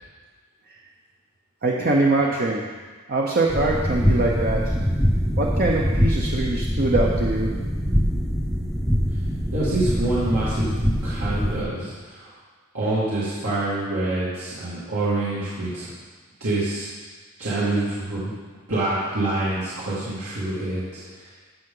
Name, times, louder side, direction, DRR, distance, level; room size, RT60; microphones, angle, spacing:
voice 1, 1.6-2.6 3.1-4.7 5.4-7.5, right 2 dB, 40° right, -2 dB, 0.7 m, -23 dB
sound 1, 3.5-11.6, equal, ahead, 0.6 m, -23 dB
voice 2, 9.5-10.7 11.0-12.3 12.7-15.9 16.4-16.9 17.4-18.3 18.7-21.3, right 2 dB, 75° right, -11 dB, 2.4 m, -26 dB
15.5 x 5.6 x 3.8 m, 1.4 s
head